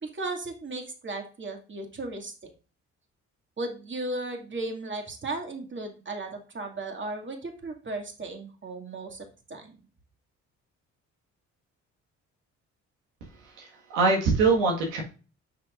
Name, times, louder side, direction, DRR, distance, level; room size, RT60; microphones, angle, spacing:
voice 1, 0.0-2.3 3.6-9.8, right 2 dB, 35° right, 3 dB, 2.3 m, -35 dB
voice 2, 13.4-15.0, right 3 dB, 85° right, 0 dB, 1.7 m, -24 dB
9.3 x 6.2 x 2.5 m, 0.34 s
hypercardioid pair, 55°, 35 cm